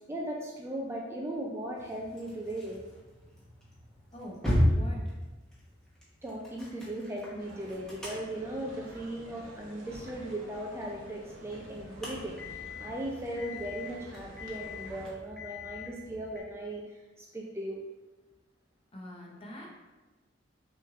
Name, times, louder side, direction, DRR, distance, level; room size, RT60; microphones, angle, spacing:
voice 1, 0.1-2.8 6.2-17.8, right 1 dB, 15° right, -2 dB, 0.4 m, -38 dB
sound 1, 1.7-16.4, left 1 dB, 5° left, 1.0 m, -36 dB
sound 2, 7.4-15.1, equal, 75° right, 1.0 m, -49 dB
voice 2, 18.9-19.7, equal, 30° left, -1 dB, 0.8 m, -44 dB
5.8 x 3.1 x 2.4 m, 1.2 s
head